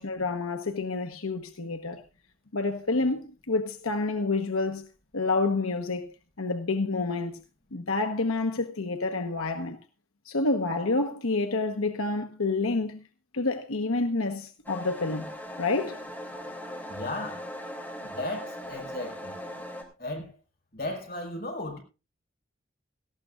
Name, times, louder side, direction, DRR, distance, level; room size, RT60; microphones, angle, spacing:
voice 1, 0.0-2.0 2.5-4.8 5.1-7.4 7.7-9.8 10.2-13.0 13.3-15.3 15.6-16.0, left 3 dB, 90° left, 1.2 m, -28 dB
sound 1, 14.6-19.8, equal, 10° left, 3.3 m, -39 dB
voice 2, 16.9-17.5 18.1-19.4 20.0-20.3 20.7-21.8, left 1 dB, 45° left, 5.2 m, -35 dB
18.5 x 14.5 x 2.5 m
head